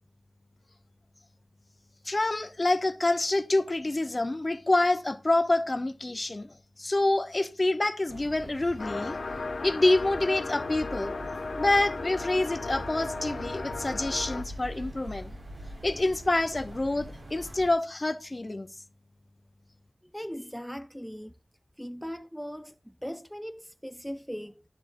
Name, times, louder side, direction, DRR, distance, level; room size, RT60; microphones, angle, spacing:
voice 1, 2.1-6.5 6.8-9.2 9.6-11.2 11.5-15.3 15.8-18.7, left 2 dB, 35° left, 0.7 m, -27 dB
sound 1, 8.1-17.7, right 1 dB, 85° right, 4.7 m, -43 dB
sound 2, 8.8-14.4, left 3 dB, 75° left, 0.7 m, -36 dB
voice 2, 20.1-21.3 21.8-24.6, equal, 5° left, 0.5 m, -39 dB
12.0 x 10.0 x 2.6 m
wide cardioid pair, 75°, 0 cm